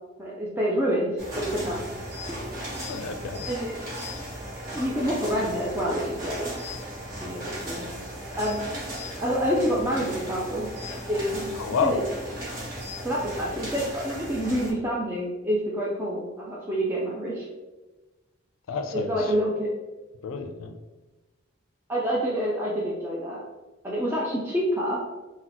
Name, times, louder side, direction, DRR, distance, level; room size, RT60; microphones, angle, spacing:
voice 1, 0.2-1.8 3.5-3.8 4.7-6.5 7.2-8.0 8.4-10.7 11.1-12.0 13.0-17.5 18.9-19.7 21.9-23.4 23.8-25.0, equal, 10° right, -6 dB, 0.3 m, -27 dB
sound 1, 1.2-14.7, equal, 45° right, 1.3 m, -36 dB
voice 2, 2.8-3.4 11.6-12.0 18.7-19.3 20.2-20.7, left 5 dB, 90° left, 6 dB, 0.4 m, -29 dB
2.8 x 2.1 x 3.9 m, 1.2 s
head